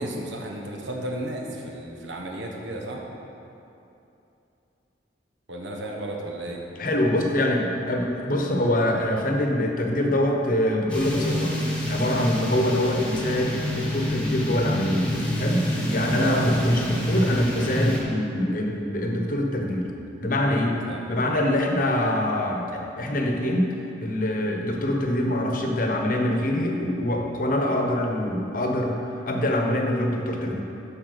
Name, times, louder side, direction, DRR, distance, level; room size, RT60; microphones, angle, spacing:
voice 1, 0.0-3.0 5.5-6.6 16.0-16.6 20.2-21.4, right 1 dB, 80° right, 0 dB, 1.2 m, -34 dB
voice 2, 6.8-15.1 15.3-19.9 20.2-20.8 21.1-23.7 24.0-29.0 29.2-30.6, left 1 dB, 45° left, 1 dB, 1.0 m, -24 dB
sound 1, 10.9-18.0, equal, 5° left, 1.3 m, -26 dB
7.5 x 6.0 x 6.6 m, 2.8 s
head